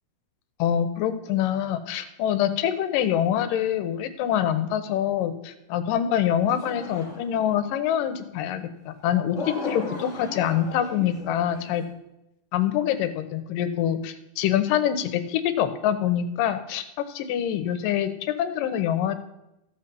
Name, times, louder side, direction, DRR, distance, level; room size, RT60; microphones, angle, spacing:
voice 1, 0.6-11.8 12.5-19.2, left 10 dB, 85° left, 11 dB, 2.5 m, -25 dB
sound 1, 6.5-7.7 9.3-11.9, left 2 dB, 25° left, 1.8 m, -37 dB
14.0 x 6.2 x 6.9 m, 0.89 s
omnidirectional pair, 3.8 m